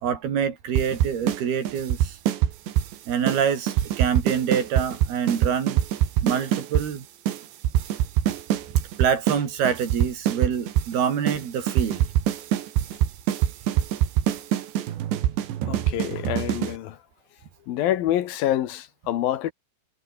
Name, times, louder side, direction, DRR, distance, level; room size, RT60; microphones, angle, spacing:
voice 1, 0.0-2.2 3.1-5.8 6.2-7.1 9.0-12.0, right 7 dB, 65° right, 4.9 m, -26 dB
sound 1, 0.8-1.4 1.7-2.9 3.3-3.4 3.7-6.9 7.3-7.4 7.6-9.4 9.7-10.9 11.3-11.4 11.7-16.8, right 11 dB, 85° right, 4.3 m, -23 dB
voice 2, 15.7-17.0 17.7-19.5, left 12 dB, 65° left, 2.8 m, -26 dB
omnidirectional pair, 5.0 m